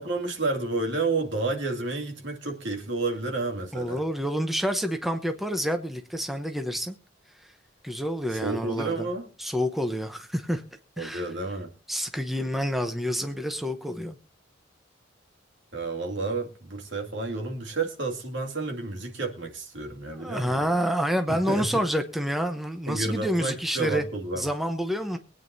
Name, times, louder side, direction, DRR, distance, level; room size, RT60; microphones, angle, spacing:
voice 1, 0.0-4.0 8.3-9.3 11.0-11.7 15.7-20.7 21.3-21.9 22.9-24.5, right 3 dB, 65° right, 2.3 m, -30 dB
voice 2, 3.7-6.9 7.8-9.1 9.4-10.6 11.0-11.3 11.9-14.2 20.1-24.0 24.3-25.2, equal, ahead, 0.8 m, -28 dB
23.0 x 9.1 x 2.7 m
head